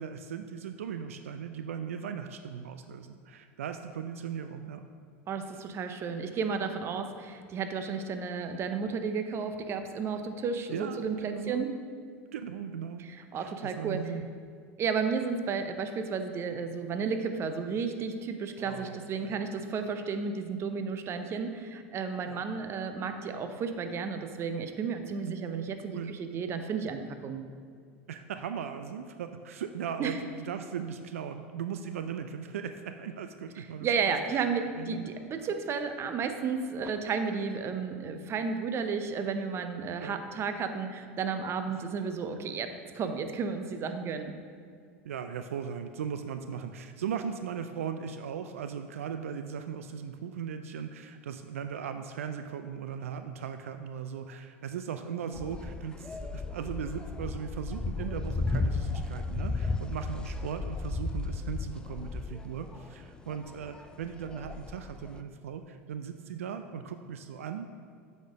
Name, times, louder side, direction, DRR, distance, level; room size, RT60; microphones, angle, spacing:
voice 1, 0.0-4.9 10.7-11.6 12.3-13.0 13.4-14.3 18.6-19.4 22.2-22.4 25.2-25.4 25.9-26.2 28.1-34.4 34.8-35.1 40.0-40.2 45.0-67.7, right 7 dB, 80° right, 8 dB, 0.4 m, -38 dB
voice 2, 5.3-11.7 13.3-14.1 14.8-27.4 30.0-30.2 33.6-44.4, right 5 dB, 35° right, 7 dB, 0.6 m, -33 dB
sound 1, 55.3-65.2, left 3 dB, 10° left, 0.3 m, -35 dB
8.2 x 4.2 x 5.0 m, 2.1 s
hypercardioid pair, 85°, 7 cm